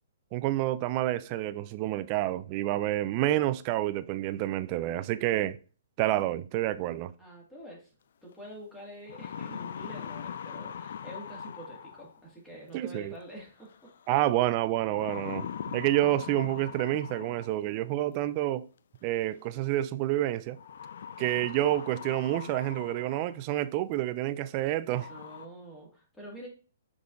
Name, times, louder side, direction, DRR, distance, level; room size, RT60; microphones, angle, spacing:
voice 1, 0.3-5.6 6.0-7.1 12.7-13.2 14.1-18.7 19.0-20.6 21.2-25.1, right 14 dB, 35° right, 0.3 m, -28 dB
voice 2, 7.2-7.9 8.2-13.9 24.9-26.5, equal, 5° left, 1.8 m, -47 dB
sound 1, 8.3-8.4 8.9-12.3 13.7-14.1 14.9-17.7 19.0-19.1 20.6-23.4 23.9-24.0 24.6-24.7 24.9-25.5, left 8 dB, 60° left, 0.3 m, -41 dB
5.5 x 3.7 x 2.5 m
figure-of-eight pair, 120°, 0 cm